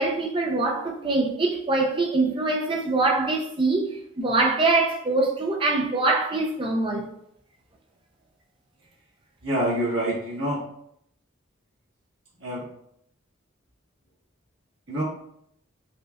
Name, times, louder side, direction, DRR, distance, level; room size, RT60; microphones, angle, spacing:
voice 1, 0.0-3.9 4.2-7.1, right 2 dB, 25° right, 0.5 m, -23 dB
voice 2, 9.4-10.6 12.4-12.6 14.9-15.0, right 1 dB, 80° right, 1.3 m, -26 dB
5.0 x 2.3 x 2.3 m
head